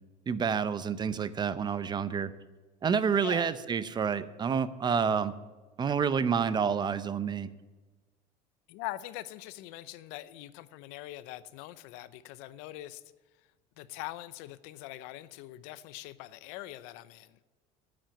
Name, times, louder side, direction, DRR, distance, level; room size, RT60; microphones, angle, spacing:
voice 1, 0.3-2.3 2.8-5.3 5.8-7.5, right 6 dB, 25° right, 15 dB, 0.7 m, -28 dB
voice 2, 3.2-3.5 8.7-13.0 13.8-17.4, left 16 dB, 80° left, 16 dB, 0.7 m, -43 dB
10.5 x 7.6 x 8.9 m, 1.2 s
cardioid pair, 125°, 17 cm